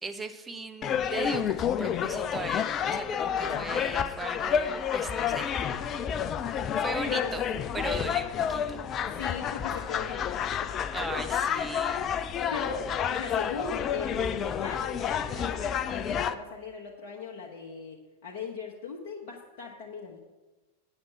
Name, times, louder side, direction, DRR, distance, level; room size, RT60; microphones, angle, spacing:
voice 1, 0.0-5.5 6.8-7.5 7.7-8.8 10.9-12.1, right 3 dB, 10° right, 8 dB, 0.8 m, -38 dB
sound 1, 0.8-16.3, left 8 dB, 30° left, 0.4 m, -30 dB
voice 2, 3.5-3.8 7.1-7.3 9.1-10.7 12.5-20.2, left 5 dB, 45° left, -2 dB, 1.1 m, -39 dB
9.0 x 6.6 x 5.8 m, 1.2 s
figure-of-eight pair, 90°, 0 cm